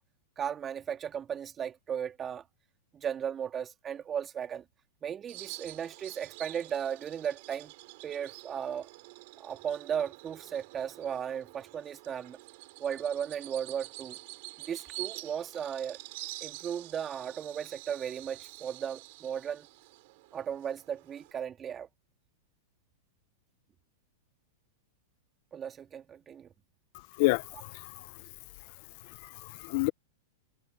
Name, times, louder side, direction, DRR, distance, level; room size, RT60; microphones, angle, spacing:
voice 1, 0.4-2.4 2.9-4.6 5.0-7.7 8.0-8.9 9.4-12.4 12.8-14.2 14.7-16.0 16.4-19.7 20.3-21.9 25.5-26.5, right 8 dB, 25° right, 3.2 m, -36 dB
Bird vocalization bird call bird song, 5.3-21.3, right 23 dB, 55° right, 6.8 m, -47 dB
voice 2, 27.2-28.1 29.1-29.9, left 24 dB, 55° left, 0.8 m, -30 dB
hypercardioid pair, 110°, 0 cm